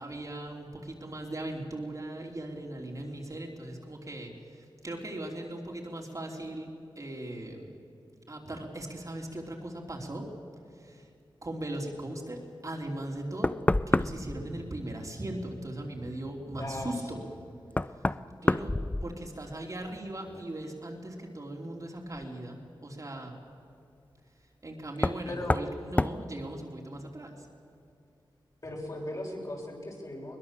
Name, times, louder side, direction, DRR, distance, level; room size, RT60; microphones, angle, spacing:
voice 1, 0.0-6.7 6.9-7.8 8.3-10.2 10.8-11.1 11.4-13.6 13.9-17.2 18.4-18.7 19.0-23.4 24.6-27.5, right 1 dB, 40° right, 0 dB, 3.3 m, -39 dB
Knock, 13.0-13.1 13.4-14.4 16.8-16.9 17.7-19.5 19.9-20.4 22.1-22.2 25.0-25.2 25.5-25.7 26.0-26.2, left 2 dB, 15° left, 0.5 m, -28 dB
voice 2, 16.6-17.2 25.3-25.6 28.6-30.4, left 1 dB, 40° left, -2 dB, 6.5 m, -38 dB
22.0 x 20.5 x 7.4 m, 2.6 s
wide cardioid pair, 75°, 9 cm